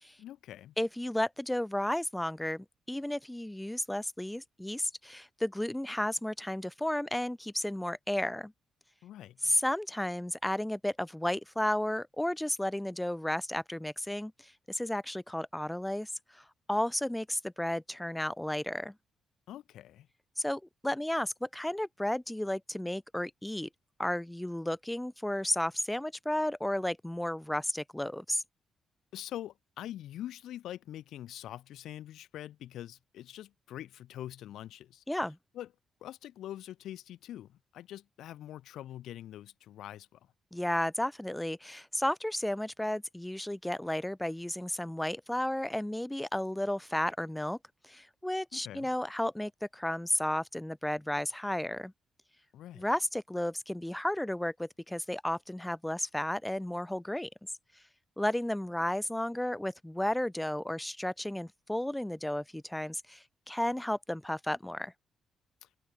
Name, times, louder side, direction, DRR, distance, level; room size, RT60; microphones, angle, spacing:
voice 1, 0.2-0.7 9.0-9.5 19.5-20.1 29.1-35.0 35.5-35.7 36.0-40.3 48.5-48.9 52.5-52.9 65.6-65.7, left 12 dB, 85° left, 3.9 m, -44 dB
voice 2, 0.8-8.5 9.4-18.9 20.4-23.7 24.0-28.4 35.1-35.4 40.5-47.6 47.8-51.9 52.8-57.3 58.2-64.9, left 1 dB, 5° left, 3.7 m, -33 dB
cardioid pair, 180°, 0 cm